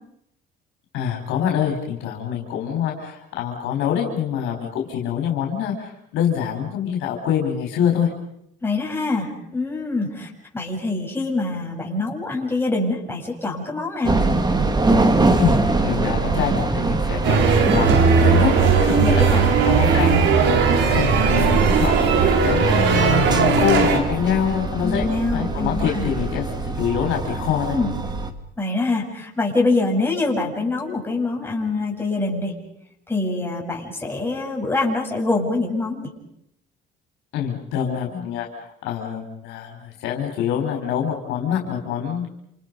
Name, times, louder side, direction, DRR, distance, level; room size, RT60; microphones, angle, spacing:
voice 1, 0.9-8.1 15.4-20.5 20.8-27.8 37.3-42.3, left 8 dB, 80° left, 2 dB, 4.6 m, -25 dB
voice 2, 8.6-14.2 19.0-19.4 24.8-26.1 27.7-27.9 28.6-32.5 33.1-36.1, left 3 dB, 10° left, -1 dB, 7.9 m, -24 dB
sound 1, 14.0-28.3, right 3 dB, 20° right, 2.2 m, -23 dB
sound 2, 17.2-24.0, right 5 dB, 70° right, 4.6 m, -18 dB
28.5 x 28.5 x 5.4 m, 0.76 s
cardioid pair, 105°, 19 cm